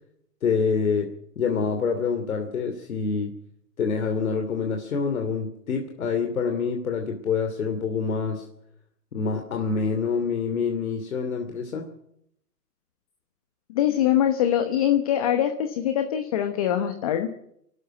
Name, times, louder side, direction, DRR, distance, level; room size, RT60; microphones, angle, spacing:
voice 1, 0.4-1.1 1.4-3.3 3.8-8.4 9.1-11.9, left 5 dB, 60° left, 4 dB, 2.9 m, -26 dB
voice 2, 13.7-17.3, left 10 dB, 20° left, 8 dB, 1.0 m, -23 dB
25.5 x 12.0 x 9.0 m, 0.75 s
hypercardioid pair, 155°, 48 cm